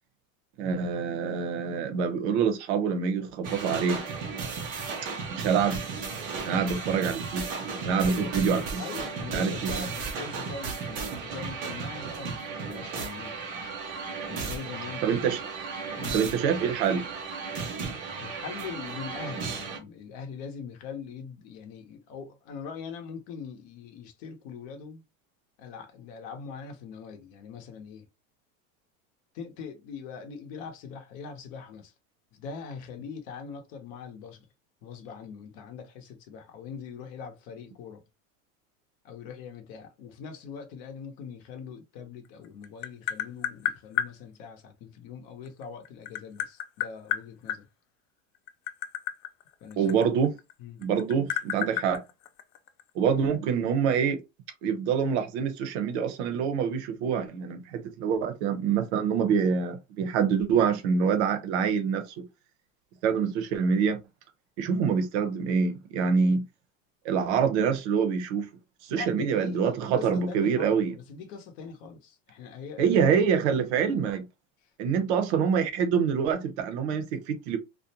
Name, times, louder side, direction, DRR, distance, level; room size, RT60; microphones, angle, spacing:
voice 1, 0.6-4.0 5.3-5.8 6.4-7.5 7.8-8.8 9.3-9.8 15.0-15.4 16.1-17.1 49.8-50.3 50.8-52.0 52.9-54.2 54.6-62.2 63.0-64.0 64.6-66.4 67.0-68.5 68.8-70.9 72.8-74.2 74.8-77.6, right 6 dB, 60° right, 0.7 m, -26 dB
sound 1, 3.4-19.8, right 5 dB, 25° right, 0.4 m, -35 dB
voice 2, 8.0-8.4 8.8-13.4 14.3-15.4 16.0-16.2 18.1-25.0 25.6-28.0 29.3-31.9 32.3-34.5 34.8-38.0 39.0-47.7 49.6-50.2 50.6-50.8 68.9-73.1 74.6-74.7 75.1-75.2, left 6 dB, 50° left, 0.8 m, -42 dB
Tap, 42.3-44.1 45.5-47.6 48.4-50.5 50.8-52.8, left 11 dB, 85° left, 0.5 m, -31 dB
2.5 x 2.1 x 2.7 m
supercardioid pair, 160°, 39 cm